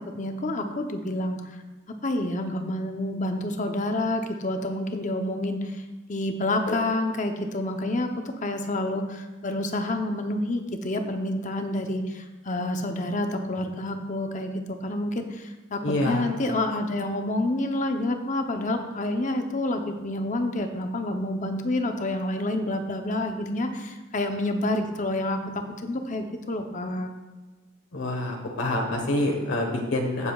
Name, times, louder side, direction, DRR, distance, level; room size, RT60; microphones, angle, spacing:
voice 1, 0.0-1.6 2.0-5.8 6.1-27.1, left 1 dB, 40° left, 5 dB, 0.8 m, -28 dB
voice 2, 15.8-16.3 27.9-30.3, left 1 dB, 70° left, 1 dB, 1.3 m, -26 dB
15.0 x 7.3 x 2.4 m, 1.2 s
head